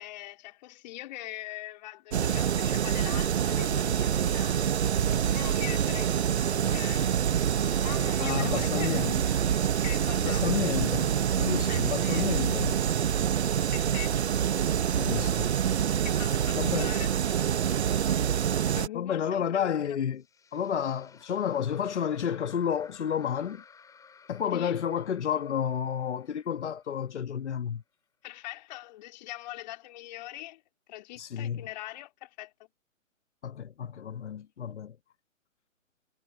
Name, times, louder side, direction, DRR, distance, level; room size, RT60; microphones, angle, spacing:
voice 1, 0.0-4.6 5.0-7.2 7.8-9.5 9.8-10.9 11.7-12.3 13.6-14.2 16.0-17.1 18.7-20.0 24.5-24.8 28.2-30.6 30.9-32.5, left 16 dB, 30° left, 2.9 m, -42 dB
sound 1, 2.1-18.9, right 9 dB, 55° right, 1.0 m, -26 dB
voice 2, 8.2-9.2 10.2-12.8 14.9-15.5 16.5-16.9 18.9-20.2 20.5-23.6 24.3-27.8 31.2-31.6 33.4-35.0, left 8 dB, 55° left, 1.4 m, -31 dB
sound 2, 20.2-27.5, left 6 dB, 10° left, 4.8 m, -56 dB
figure-of-eight pair, 140°, 41 cm